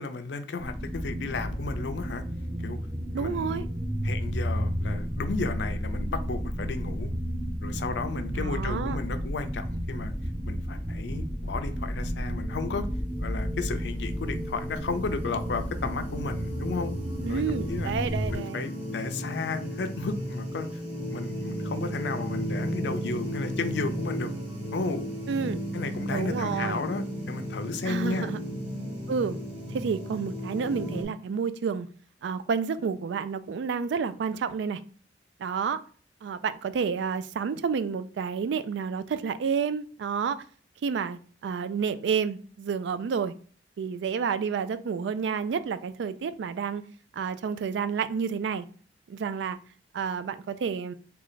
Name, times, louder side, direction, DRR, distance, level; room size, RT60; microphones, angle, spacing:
voice 1, 0.0-2.2 2.6-2.8 3.1-3.7 4.0-7.1 7.6-10.1 10.5-12.9 13.2-16.9 17.3-17.4 17.7-17.9 18.3-20.7 21.1-24.3 24.7-25.1 25.7-28.3, left 4 dB, 75° left, 0.5 m, -33 dB
sound 1, 0.6-18.4, equal, 15° right, 0.5 m, -32 dB
voice 2, 3.1-3.6 8.3-9.0 17.2-18.6 25.3-25.6 26.1-26.8 27.9-28.4 29.1-29.4 29.7-31.9 32.2-34.8 35.4-35.8 36.2-40.4 40.8-43.3 43.8-46.8 47.1-48.7 49.1-49.6 49.9-50.9, right 6 dB, 85° right, 0.3 m, -30 dB
sound 2, 12.5-31.0, equal, 30° right, 1.4 m, -35 dB
3.1 x 2.3 x 3.9 m
head